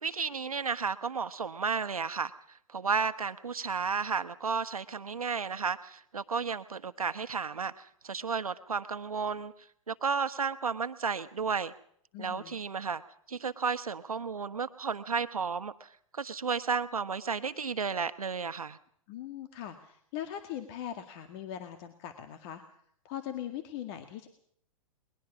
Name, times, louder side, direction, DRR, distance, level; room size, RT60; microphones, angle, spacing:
voice 1, 0.0-2.3 2.7-9.5 9.9-11.7 12.2-13.0 13.3-18.8, right 5 dB, 85° right, 11 dB, 1.3 m, -33 dB
voice 2, 12.1-12.6 19.1-22.8 23.0-24.3, left 11 dB, 45° left, 8 dB, 2.0 m, -40 dB
21.5 x 21.0 x 6.1 m, 0.65 s
figure-of-eight pair, 110°, 18 cm